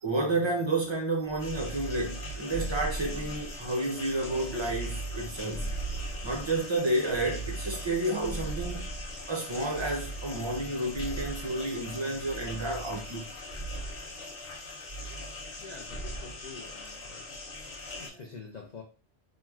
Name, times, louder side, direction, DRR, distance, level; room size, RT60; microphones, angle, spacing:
voice 1, 0.0-6.0 6.2-8.9 9.3-13.3 18.0-18.2, right 2 dB, 45° right, 0.3 m, -31 dB
sound 1, 1.3-3.7 4.2-6.6 7.1-9.3 9.7-11.6 12.2-13.2 13.5-14.0 14.9-15.6 15.9-16.3, right 3 dB, 35° left, 1.0 m, -38 dB
sound 2, 1.4-18.1, left 3 dB, 70° left, 1.0 m, -43 dB
voice 2, 15.6-17.3 17.9-18.8, left 4 dB, 55° left, 0.5 m, -46 dB
3.0 x 2.5 x 2.2 m
omnidirectional pair, 1.2 m